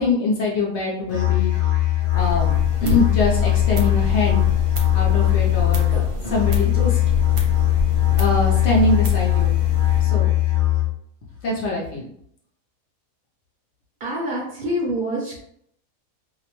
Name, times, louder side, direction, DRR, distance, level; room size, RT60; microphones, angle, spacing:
voice 1, 0.0-1.5 2.1-2.5 2.8-4.4 4.9-7.0 8.0-9.5 10.0-10.3 11.4-12.1, left 3 dB, 60° left, -3 dB, 0.8 m, -23 dB
Musical instrument, 1.1-11.1, left 15 dB, 25° left, 0.6 m, -20 dB
sound 1, 2.1-10.0, equal, 75° right, 1.1 m, -29 dB
voice 2, 14.0-15.4, equal, 50° right, -4 dB, 0.7 m, -26 dB
2.6 x 2.1 x 2.9 m, 0.68 s
omnidirectional pair, 1.5 m